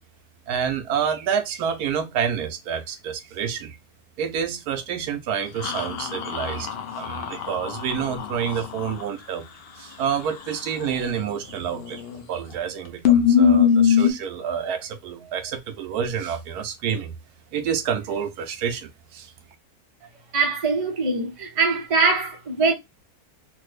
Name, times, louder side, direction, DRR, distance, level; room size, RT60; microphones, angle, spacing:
voice 1, 0.5-3.8 4.2-6.7 7.0-9.4 9.8-12.0 12.3-17.1 17.5-19.3, right 7 dB, 80° right, 1.2 m, -28 dB
sound 1, 5.6-9.0 11.7-12.2 12.5-12.6 13.1-14.1, left 8 dB, 70° left, 0.5 m, -21 dB
voice 2, 20.3-22.7, right 4 dB, 60° right, 0.3 m, -22 dB
3.5 x 2.1 x 3.2 m
omnidirectional pair, 1.6 m